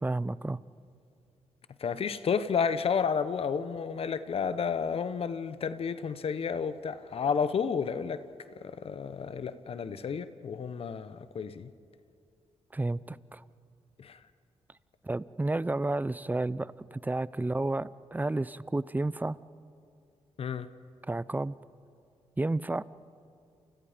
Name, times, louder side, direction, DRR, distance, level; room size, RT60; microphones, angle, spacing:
voice 1, 0.0-0.6 12.7-13.4 15.0-19.4 21.1-21.5 22.4-22.8, right 2 dB, 15° right, 19 dB, 0.5 m, -31 dB
voice 2, 1.8-8.2 8.6-11.7 14.0-14.2 20.4-20.7, left 6 dB, 60° left, 13 dB, 0.9 m, -31 dB
30.0 x 28.5 x 5.1 m, 2.5 s
cardioid pair, 80°, 11 cm